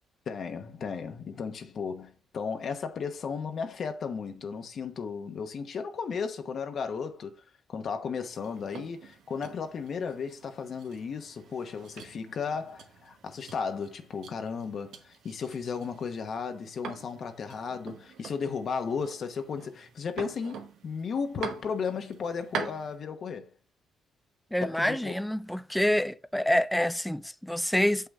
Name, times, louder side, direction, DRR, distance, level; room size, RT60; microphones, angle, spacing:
voice 1, 0.3-7.4 7.7-23.5 24.6-25.2, left 5 dB, 55° left, 0.9 m, -35 dB
sound 1, 8.3-23.0, right 6 dB, 80° right, 1.1 m, -44 dB
voice 2, 24.5-28.1, left 1 dB, 5° left, 0.4 m, -27 dB
6.9 x 5.7 x 3.5 m
cardioid pair, 90°, 0 cm